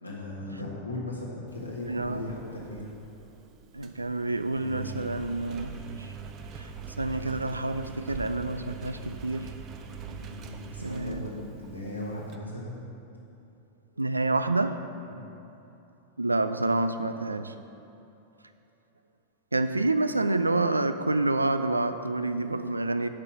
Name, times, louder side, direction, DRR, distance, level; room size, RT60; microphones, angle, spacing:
voice 1, 0.0-2.9 10.1-12.9 15.0-15.2, left 1 dB, 85° left, -5 dB, 1.5 m, -38 dB
Engine, 1.5-12.4, right 6 dB, 35° right, 0.6 m, -43 dB
voice 2, 1.9-2.3 3.7-6.1 6.5-6.7 7.0-9.5 10.8-11.3 14.0-14.8 16.2-17.6 19.5-23.1, right 2 dB, 80° right, 10 dB, 0.3 m, -28 dB
6.6 x 5.5 x 5.9 m, 2.9 s
figure-of-eight pair, 90°, 0 cm